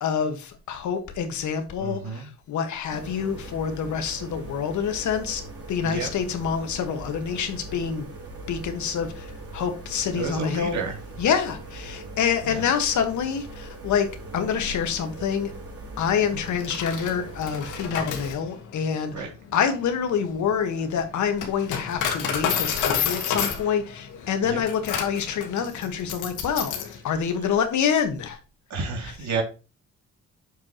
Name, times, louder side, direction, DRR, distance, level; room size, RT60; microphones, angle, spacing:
voice 1, 0.0-5.4 5.7-8.1 8.5-10.8 11.2-15.5 16.0-19.3 19.5-28.4, left 7 dB, 70° left, 1.5 m, -27 dB
voice 2, 1.8-2.3 5.8-6.1 10.1-10.9 12.5-12.6 17.9-18.0 19.1-19.3 24.5-24.6 28.7-29.4, right 5 dB, 70° right, 2.8 m, -30 dB
sound 1, 2.9-18.3, right 2 dB, 50° right, 3.9 m, -40 dB
Coin (dropping), 16.5-27.0, left 8 dB, 90° left, 1.7 m, -30 dB
7.5 x 7.0 x 3.0 m
cardioid pair, 90°, 30 cm